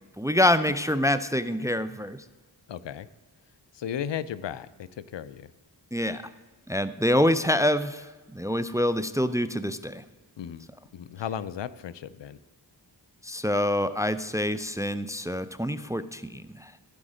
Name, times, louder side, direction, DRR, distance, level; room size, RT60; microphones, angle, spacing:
voice 1, 0.2-2.2 5.9-6.2 6.7-10.0 13.2-16.7, left 1 dB, 10° right, 13 dB, 0.4 m, -26 dB
voice 2, 2.7-3.1 3.7-5.5 10.4-10.7 10.9-12.4, left 9 dB, 75° left, 16 dB, 0.5 m, -35 dB
15.0 x 5.1 x 5.0 m, 1.3 s
wide cardioid pair, 50°, 44 cm